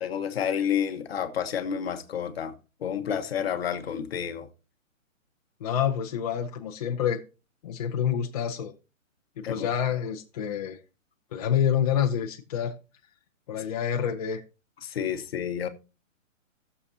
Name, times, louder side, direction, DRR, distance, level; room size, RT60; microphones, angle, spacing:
voice 1, 0.0-2.5 2.8-4.5 9.4-9.7 14.8-15.7, left 8 dB, 45° left, 1.2 m, -30 dB
voice 2, 5.6-7.2 7.6-8.7 9.4-10.8 11.3-12.7 13.5-14.4, left 9 dB, 30° left, 0.9 m, -27 dB
17.0 x 7.0 x 2.8 m
hypercardioid pair, 160°, 40 cm